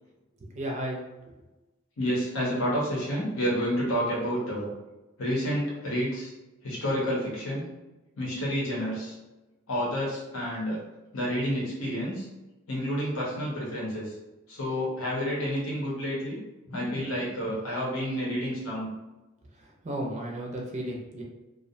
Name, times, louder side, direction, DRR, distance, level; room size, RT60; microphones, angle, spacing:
voice 1, 0.5-1.0 19.8-21.2, right 1 dB, 35° right, -1 dB, 0.4 m, -33 dB
voice 2, 2.0-4.7 5.2-6.3 6.6-7.7 8.2-9.1 9.7-10.8 11.1-12.3 12.7-14.1 14.5-16.4 16.7-18.9, equal, 80° left, -5 dB, 0.8 m, -29 dB
2.4 x 2.0 x 2.6 m, 1.0 s
head